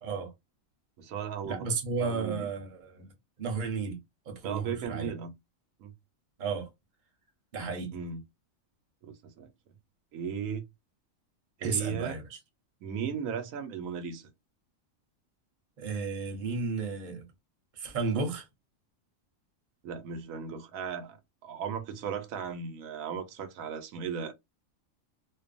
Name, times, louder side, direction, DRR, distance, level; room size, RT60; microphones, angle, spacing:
voice 1, 0.0-0.3 1.4-3.1 3.4-4.0 4.3-5.1 6.4-6.7 7.5-8.0 11.6-12.3 15.8-17.3 17.7-18.5, right 4 dB, 40° right, 0.9 m, -33 dB
voice 2, 1.0-1.7 2.0-2.5 4.4-5.3 5.8-5.9 7.9-8.2 9.0-9.5 10.1-10.6 11.6-12.2 12.8-14.3 19.8-24.3, right 7 dB, 80° right, 1.0 m, -36 dB
2.5 x 2.3 x 2.4 m
omnidirectional pair, 1.4 m